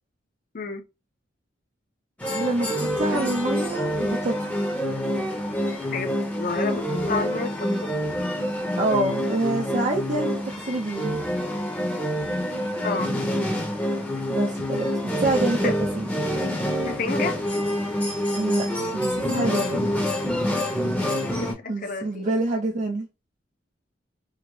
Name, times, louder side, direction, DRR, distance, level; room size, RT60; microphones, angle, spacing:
sound 1, 2.2-21.5, equal, 10° left, 0.8 m, -27 dB
voice 1, 2.3-4.5 8.8-11.2 14.3-14.9 15.2-16.1 18.3-18.7 18.9-20.2 21.2-21.3 21.7-23.1, right 2 dB, 40° right, 0.5 m, -27 dB
voice 2, 6.3-7.9 12.8-13.1 15.6-15.8 16.8-17.4 21.4-22.2, left 4 dB, 50° left, 0.7 m, -30 dB
3.6 x 2.1 x 3.0 m
head